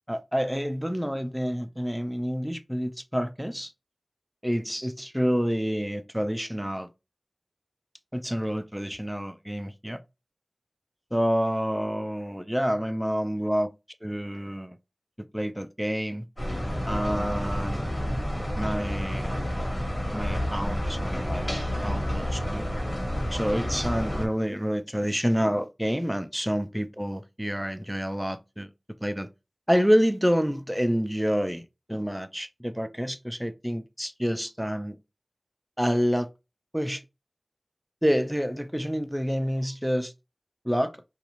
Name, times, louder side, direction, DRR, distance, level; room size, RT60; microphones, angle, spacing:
voice 1, 0.1-3.7 4.4-6.9 8.1-10.0 11.1-13.7 14.0-14.8 15.2-16.3 16.9-17.8 18.6-19.3 20.1-21.5 21.8-22.7 23.3-28.7 29.0-29.3 29.7-35.0 35.8-36.3 36.7-37.0 38.0-40.1 40.6-41.0, equal, 5° right, 0.3 m, -28 dB
sound 1, 16.4-24.3, equal, 35° left, 1.1 m, -29 dB
2.4 x 2.3 x 2.9 m
wide cardioid pair, 45°, 0 cm